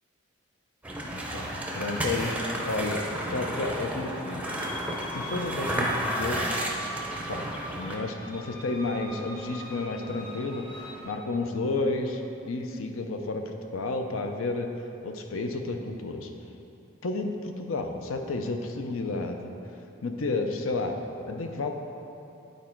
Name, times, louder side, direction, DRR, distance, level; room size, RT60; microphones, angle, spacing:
sound 1, 0.8-8.0, right 1 dB, 5° right, 0.5 m, -32 dB
voice 1, 1.1-2.4 2.6-4.6 5.1-6.6 7.3-7.5 7.8-14.7 15.0-16.3 17.0-19.5 20.0-21.7, left 3 dB, 80° left, 5 dB, 0.6 m, -31 dB
sound 2, 4.5-11.0, left 1 dB, 45° left, 1.7 m, -41 dB
9.4 x 4.3 x 4.4 m, 2.8 s
head